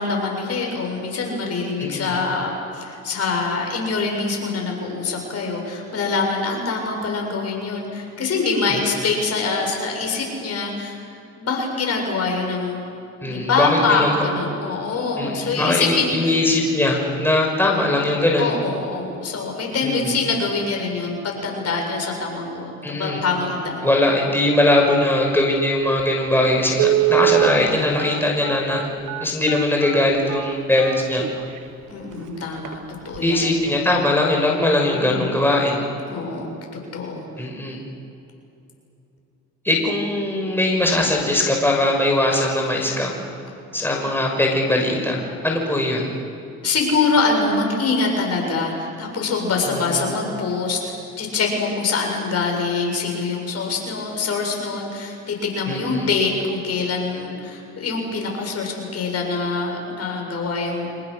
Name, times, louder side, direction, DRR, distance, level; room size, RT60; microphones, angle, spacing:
voice 1, 0.0-11.0 11.3-12.8 13.2-16.3 18.4-23.9 31.9-32.8 33.0-33.5 34.9-35.4 36.1-36.5 36.9-37.3 46.6-60.9, left 4 dB, 50° left, 1 dB, 7.5 m, -24 dB
voice 2, 1.8-2.2 8.7-8.8 13.2-14.3 15.2-18.5 19.8-20.1 22.8-23.2 23.8-28.8 29.2-31.2 33.2-35.8 37.4-37.8 39.6-43.1 43.7-45.2 45.4-46.1 49.7-50.1 55.7-56.1, left 1 dB, 5° left, 0 dB, 6.1 m, -20 dB
Telephone, 26.0-26.1 26.7-31.6 32.1-32.2 32.6-32.8 33.1-33.4 33.7-33.8, right 14 dB, 80° right, 1.2 m, -23 dB
28.5 x 26.5 x 6.6 m, 2.7 s
supercardioid pair, 80°, 31 cm